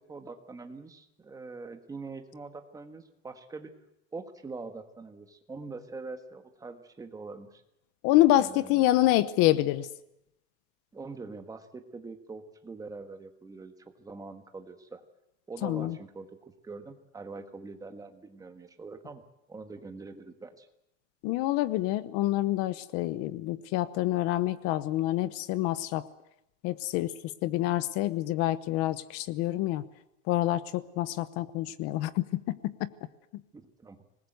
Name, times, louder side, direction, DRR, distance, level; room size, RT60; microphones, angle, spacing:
voice 1, 0.1-3.7 4.1-7.6 8.3-8.9 10.9-13.7 14.0-15.0 15.5-16.3 16.6-19.2 19.5-20.7 33.5-34.0, right 3 dB, 10° right, 7 dB, 1.5 m, -43 dB
voice 2, 8.0-9.9 15.6-16.0 21.2-26.1 26.6-27.1 27.4-29.8 30.3-32.9, left 15 dB, 40° left, 16 dB, 0.9 m, -27 dB
26.0 x 20.0 x 7.9 m, 0.84 s
supercardioid pair, 165°, 38 cm